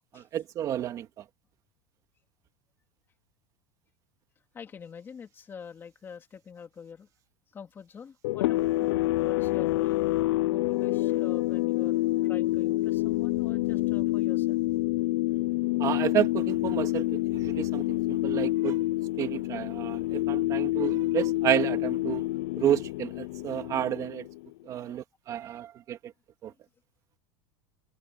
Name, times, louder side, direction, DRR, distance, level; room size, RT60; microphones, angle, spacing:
voice 1, 0.1-1.2 15.8-18.9 19.2-22.3 22.6-24.3 24.6-26.1 26.4-26.5, right 11 dB, 25° right, 2.7 m, -31 dB
voice 2, 4.5-7.1 7.5-10.0 10.4-14.6 24.8-25.0 25.4-25.5, left 6 dB, 15° left, 2.7 m, -46 dB
sound 1, 8.2-24.5, left 18 dB, 80° left, 0.4 m, -27 dB
supercardioid pair, 175°, 13 cm